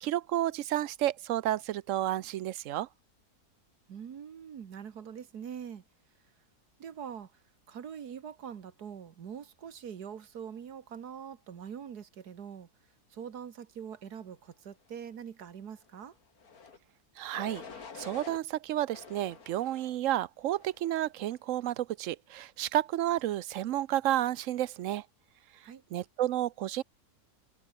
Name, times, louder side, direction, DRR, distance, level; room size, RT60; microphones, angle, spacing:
voice 1, 0.0-2.9 17.2-17.6 18.0-25.0 25.9-26.8, right 13 dB, 65° right, 0.9 m, -31 dB
voice 2, 3.9-5.8 6.8-7.4 7.7-12.7 13.1-16.2 25.6-25.8, right 8 dB, 90° right, 2.0 m, -43 dB
sound 1, 16.4-16.8 17.3-18.4 18.9-20.0 20.5-21.0, left 5 dB, 70° left, 2.6 m, -47 dB
omnidirectional pair, 1.6 m